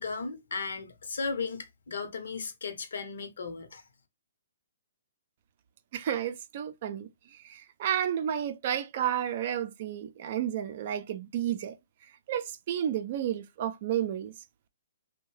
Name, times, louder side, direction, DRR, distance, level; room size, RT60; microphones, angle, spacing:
voice 1, 0.0-3.8, left 4 dB, 70° left, 0.9 m, -36 dB
voice 2, 5.9-7.1 7.4-11.8 12.3-14.3, right 10 dB, 50° right, 0.5 m, -31 dB
2.6 x 2.2 x 3.2 m
hypercardioid pair, 135°, 0 cm